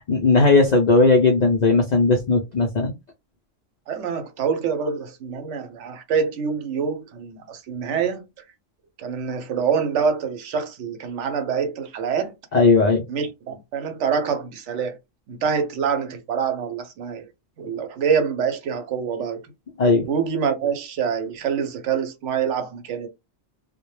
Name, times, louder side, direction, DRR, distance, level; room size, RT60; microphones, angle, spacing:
voice 1, 0.1-2.9 12.5-13.0 19.8-20.1, left 3 dB, 80° left, 0.3 m, -17 dB
voice 2, 3.9-8.2 9.0-12.3 13.1-15.0 15.3-17.3 17.6-19.4 20.1-23.1, right 6 dB, 70° right, 0.9 m, -25 dB
2.2 x 2.1 x 3.0 m
omnidirectional pair, 1.3 m